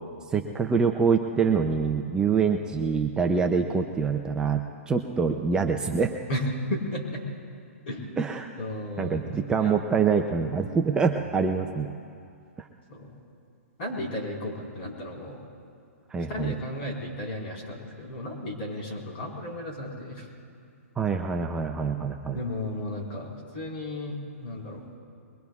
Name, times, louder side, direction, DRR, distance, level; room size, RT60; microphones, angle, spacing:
voice 1, 0.3-6.1 8.2-8.5 9.0-11.9 12.6-12.7 16.1-16.5 21.0-22.4, right 5 dB, 10° right, 4 dB, 0.5 m, -25 dB
voice 2, 6.3-7.2 7.9-8.1 8.6-9.7 12.9-13.2 13.8-15.4 16.3-20.3 22.3-24.8, left 1 dB, 45° left, -1 dB, 4.4 m, -34 dB
22.5 x 22.0 x 2.4 m, 2.4 s
hypercardioid pair, 150°, 8 cm